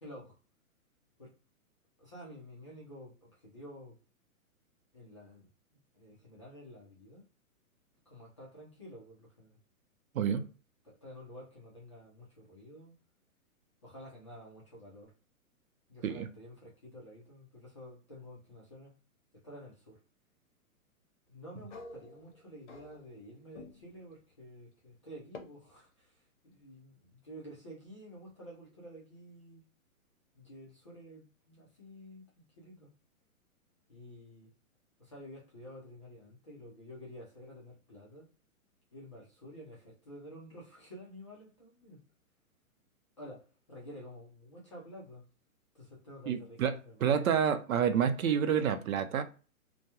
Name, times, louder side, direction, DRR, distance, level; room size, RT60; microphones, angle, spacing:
voice 1, 0.0-0.4 1.2-1.3 2.0-4.0 4.9-7.3 8.1-9.6 10.2-10.5 10.8-12.9 13.8-15.1 15.9-19.0 19.4-20.0 21.3-29.6 30.3-32.9 33.9-34.5 35.0-38.3 38.9-42.0 43.2-45.2 45.7-47.7, equal, 25° left, 0.4 m, -51 dB
sound 1, 21.7-23.3 23.5-24.0 25.3-25.4, left 3 dB, 55° left, 0.7 m, -49 dB
voice 2, 46.3-46.7 47.0-49.2, right 8 dB, 70° right, 0.6 m, -28 dB
2.2 x 2.1 x 2.8 m
hypercardioid pair, 155°, 43 cm